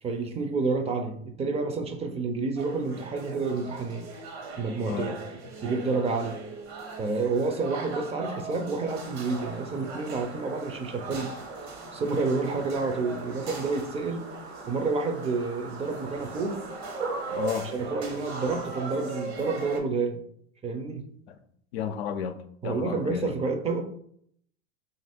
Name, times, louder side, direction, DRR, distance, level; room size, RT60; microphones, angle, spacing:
voice 1, 0.0-4.1 4.6-5.2 5.6-6.4 7.0-11.3 11.9-14.3 14.7-16.6 17.7-20.2 20.6-21.1 22.6-23.8, right 3 dB, 20° right, 0.5 m, -29 dB
sound 1, 2.6-19.8, right 3 dB, 70° right, 1.0 m, -40 dB
sound 2, 8.9-17.5, right 4 dB, 90° right, 1.3 m, -40 dB
voice 2, 17.3-17.7 21.3-21.4 21.7-23.4, left 8 dB, 80° left, 0.5 m, -33 dB
2.8 x 2.6 x 4.2 m
hypercardioid pair, 100°, 31 cm